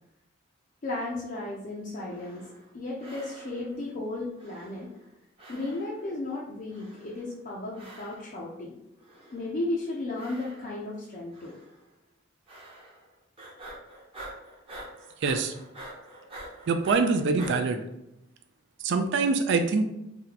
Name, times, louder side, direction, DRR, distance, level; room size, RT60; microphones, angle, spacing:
voice 1, 0.8-2.5 2.7-4.9 5.5-8.8 9.3-11.6, left 2 dB, 40° left, -4 dB, 0.4 m, -34 dB
sound 1, 2.0-2.7 3.0-3.8 4.4-5.1 5.4-6.1 6.7-7.3 7.7-8.4 9.0-9.6 10.1-10.9 11.3-11.8 12.5-13.1 13.4-17.6, right 1 dB, 30° right, 0.8 m, -46 dB
voice 2, 15.2-15.5 16.7-17.8 18.8-19.9, right 4 dB, 60° right, 6 dB, 0.3 m, -24 dB
2.8 x 2.2 x 3.9 m, 0.86 s
head